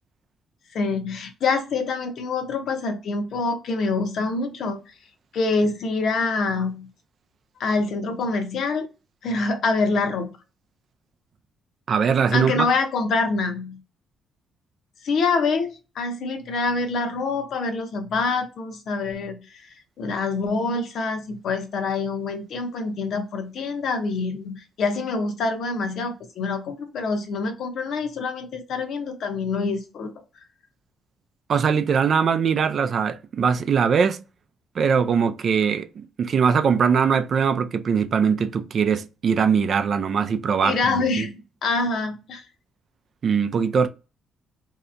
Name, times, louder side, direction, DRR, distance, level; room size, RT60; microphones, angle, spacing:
voice 1, 0.7-4.8 5.3-6.9 7.6-8.9 9.2-10.3 12.3-13.8 15.0-30.1 40.6-42.5, left 3 dB, 70° left, 0.8 m, -26 dB
voice 2, 11.9-12.7 31.5-34.2 34.8-41.3 43.2-43.9, right 6 dB, 55° right, 0.4 m, -21 dB
3.2 x 2.8 x 2.5 m
cardioid pair, 90°, 0 cm